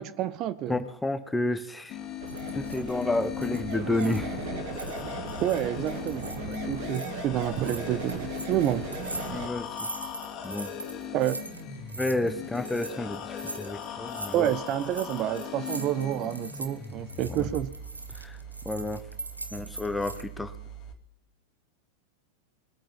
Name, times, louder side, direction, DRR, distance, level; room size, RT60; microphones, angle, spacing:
voice 1, 0.0-0.8 5.4-8.9 11.1-11.4 14.3-17.7, right 12 dB, 35° right, 14 dB, 0.6 m, -29 dB
voice 2, 0.7-2.0 2.5-4.5 9.3-9.9 10.4-10.7 12.0-14.5 17.3-17.5 18.1-18.4 18.6-19.0 19.5-20.5, left 2 dB, 5° left, 11 dB, 1.0 m, -30 dB
sound 1, 1.9-20.9, left 6 dB, 30° left, 2.7 m, -39 dB
sound 2, 2.2-9.5, right 3 dB, 55° right, 3.2 m, -38 dB
sound 3, 2.3-4.4 4.7-7.1 7.4-20.2, right 2 dB, 85° right, 1.1 m, -41 dB
21.0 x 8.8 x 5.5 m, 0.84 s
figure-of-eight pair, 90°, 0 cm